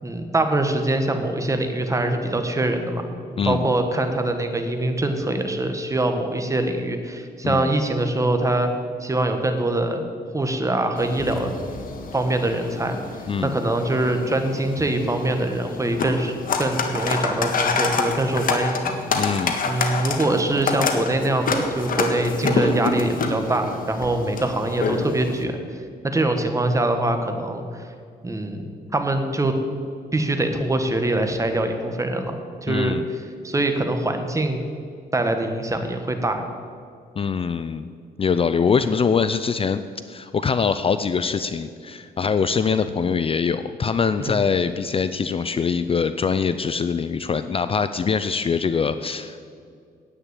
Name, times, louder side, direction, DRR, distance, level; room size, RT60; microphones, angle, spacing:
voice 1, 0.0-8.7 9.0-10.0 10.3-11.5 12.1-13.0 13.4-19.3 19.7-27.8 28.2-29.5 30.1-34.6 35.1-36.4 44.2-44.5, right 2 dB, 20° right, 6 dB, 1.5 m, -24 dB
sound 1, 11.0-25.4, left 4 dB, 55° left, 1.6 m, -27 dB
voice 2, 19.1-19.5 22.6-22.7 32.7-33.0 37.2-37.9 38.2-39.8 40.1-49.4, left 6 dB, 35° left, 12 dB, 0.5 m, -23 dB
10.0 x 8.9 x 8.3 m, 2.2 s
cardioid pair, 95°, 17 cm